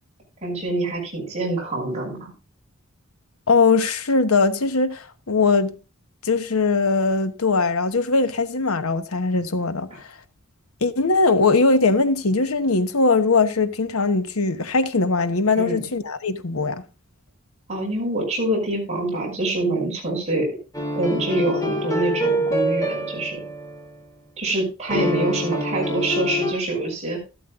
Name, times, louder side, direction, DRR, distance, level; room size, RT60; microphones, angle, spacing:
voice 1, 0.4-2.3 15.5-15.8 17.7-20.5 21.0-23.4 24.4-27.2, right 2 dB, 30° right, 5.8 m, -25 dB
voice 2, 3.5-5.7 6.2-10.0 10.8-16.8, left 3 dB, 85° left, 1.0 m, -20 dB
sound 1, 20.7-24.0 24.9-26.5, equal, 15° left, 2.6 m, -25 dB
13.0 x 12.5 x 2.4 m
head